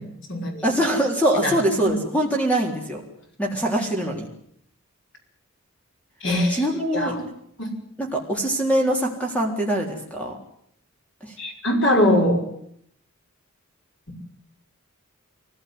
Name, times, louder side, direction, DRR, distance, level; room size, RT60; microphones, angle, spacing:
voice 1, 0.0-0.6 1.4-1.5 1.8-1.9 6.2-6.6 6.9-7.2 7.6-7.7 11.4-12.4, left 1 dB, 60° left, 2 dB, 5.7 m, -22 dB
voice 2, 0.6-3.0 3.4-4.2 6.5-7.2 8.0-10.4 11.2-11.3, right 1 dB, 5° left, 1 dB, 3.9 m, -23 dB
23.5 x 16.5 x 9.7 m, 0.69 s
head